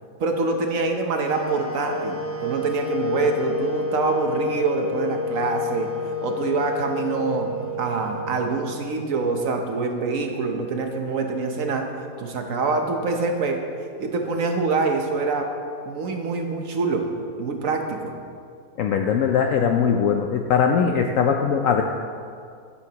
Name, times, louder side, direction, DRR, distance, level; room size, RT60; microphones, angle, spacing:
voice 1, 0.2-5.9 6.2-11.9 12.2-13.6 14.0-15.5 15.9-17.1 17.4-18.1, right 3 dB, 60° right, 4 dB, 1.2 m, -25 dB
sound 1, 1.2-9.2, left 3 dB, 10° right, 0.6 m, -30 dB
voice 2, 18.8-21.8, left 7 dB, 70° left, 4 dB, 0.8 m, -20 dB
11.5 x 10.0 x 2.9 m, 2.3 s
omnidirectional pair, 1.7 m